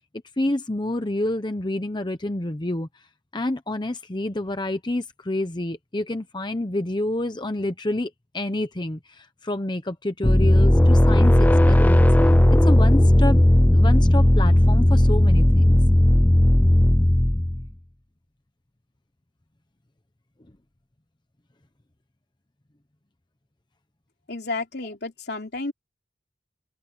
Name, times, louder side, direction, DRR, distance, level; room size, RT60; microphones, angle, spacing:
voice 1, 0.4-2.9 3.3-12.1 12.6-13.4 13.7-15.8, left 1 dB, 25° left, 0.9 m, -28 dB
sound 1, 10.2-17.7, left 1 dB, 10° left, 0.4 m, -16 dB
voice 2, 24.3-25.7, left 3 dB, 60° left, 3.2 m, -31 dB
open air
head